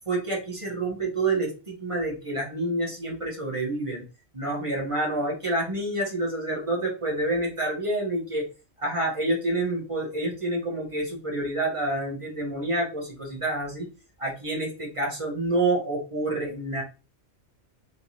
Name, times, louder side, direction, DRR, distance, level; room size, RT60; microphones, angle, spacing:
voice 1, 0.1-4.0 4.3-8.5 8.8-13.9 14.2-16.8, right 2 dB, 30° right, -3 dB, 1.1 m, -28 dB
3.4 x 3.0 x 2.8 m, 0.32 s
omnidirectional pair, 1.3 m